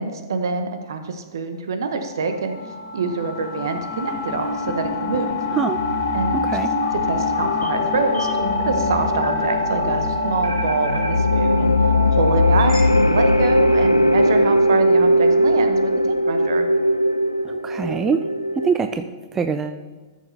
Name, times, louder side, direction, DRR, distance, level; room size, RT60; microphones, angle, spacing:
voice 1, 0.0-2.6 2.9-5.4 6.1-8.3 8.7-11.7 12.1-16.7, right 4 dB, 60° right, 7 dB, 1.0 m, -26 dB
sound 1, 2.0-15.4, left 4 dB, 40° left, 0.8 m, -27 dB
sound 2, 4.4-12.8, equal, 80° right, 1.9 m, -28 dB
voice 2, 6.3-6.7 17.4-18.2 18.6-19.0 19.3-19.8, right 6 dB, 15° right, 9 dB, 0.4 m, -23 dB
sound 3, 8.5-18.8, left 1 dB, 90° left, 0.4 m, -19 dB
13.5 x 6.6 x 3.4 m, 1.3 s
figure-of-eight pair, 110°, 2 cm